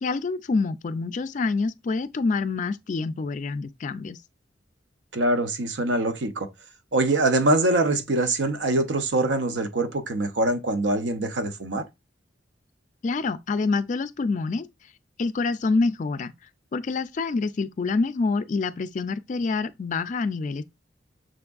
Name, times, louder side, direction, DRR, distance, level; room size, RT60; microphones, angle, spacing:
voice 1, 0.0-4.2 13.0-14.6 15.2-16.3 16.7-20.6, left 4 dB, 45° left, 0.4 m, -26 dB
voice 2, 5.1-6.5 6.9-11.8, right 2 dB, 80° right, 0.7 m, -24 dB
6.3 x 3.4 x 2.3 m
head